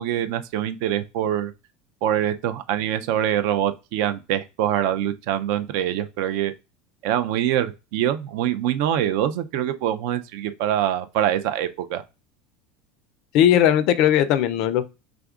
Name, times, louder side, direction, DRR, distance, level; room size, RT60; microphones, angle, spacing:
voice 1, 0.0-1.5 2.0-6.5 7.0-12.0, right 11 dB, 55° right, 0.4 m, -24 dB
voice 2, 13.3-14.9, left 10 dB, 45° left, 0.4 m, -18 dB
5.0 x 3.4 x 2.4 m
cardioid pair, 180°, 0 cm